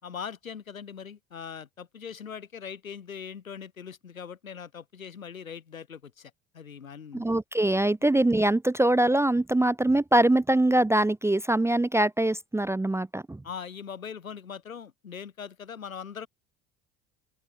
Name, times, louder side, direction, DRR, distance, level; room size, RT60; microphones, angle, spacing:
voice 1, 0.0-7.2 13.4-16.3, left 7 dB, 80° left, 4.3 m, -41 dB
voice 2, 7.1-13.4, right 1 dB, 5° right, 0.8 m, -23 dB
open air
figure-of-eight pair, 60°, 40 cm